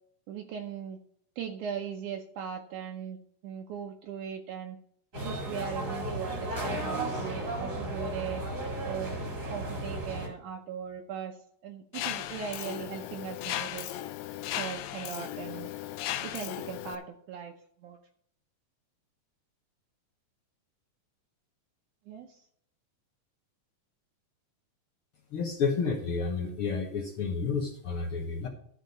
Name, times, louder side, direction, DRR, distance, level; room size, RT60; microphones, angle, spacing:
voice 1, 0.3-1.0 1.4-3.2 3.4-4.8 5.2-8.4 8.8-14.0 14.6-15.7 16.2-17.5 17.8-18.0 22.1-22.4, right 8 dB, 75° right, 2 dB, 2.2 m, -39 dB
sound 1, 5.1-10.3, right 1 dB, 30° right, 2.2 m, -34 dB
Mechanisms, 11.9-17.0, left 13 dB, 80° left, 1.6 m, -36 dB
voice 2, 25.3-28.5, left 5 dB, 60° left, 2 dB, 1.5 m, -30 dB
13.0 x 5.0 x 5.4 m, 0.66 s
omnidirectional pair, 3.7 m